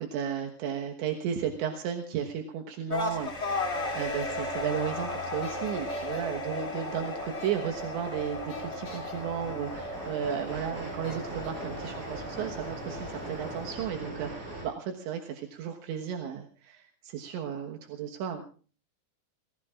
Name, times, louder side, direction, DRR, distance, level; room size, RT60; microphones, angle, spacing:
voice 1, 0.0-18.4, right 8 dB, 80° right, 2 dB, 3.6 m, -34 dB
sound 1, 2.9-13.7, left 2 dB, 20° left, 1.9 m, -35 dB
sound 2, 4.0-4.3 5.4-6.2 7.3-7.8 8.5-9.1 10.2-10.3 11.0-11.5, left 3 dB, 85° left, 9.5 m, -49 dB
sound 3, 6.5-14.7, right 2 dB, 30° right, 8.1 m, -42 dB
30.0 x 19.5 x 2.5 m, 0.40 s
omnidirectional pair, 5.2 m